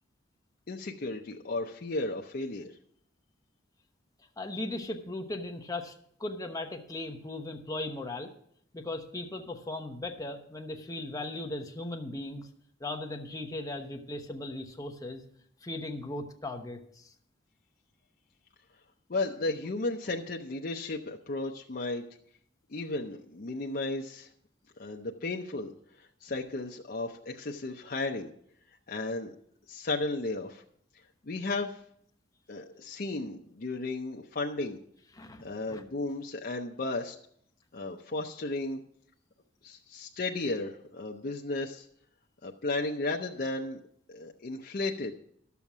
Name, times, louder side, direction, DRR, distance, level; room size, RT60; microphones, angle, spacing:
voice 1, 0.7-2.7 19.1-22.0 22.7-24.3 24.8-25.7 26.0-28.3 28.9-29.3 29.7-30.6 31.3-31.8 32.5-34.8 35.4-37.2 37.7-38.8 39.6-41.9 42.4-43.8 44.1-45.2, left 2 dB, 50° left, 1 dB, 0.7 m, -34 dB
voice 2, 4.4-5.9 6.2-8.3 8.7-12.5 12.8-15.2 15.6-17.1 35.1-35.8, left 2 dB, 20° left, 4 dB, 1.0 m, -38 dB
11.5 x 7.1 x 6.0 m, 0.67 s
head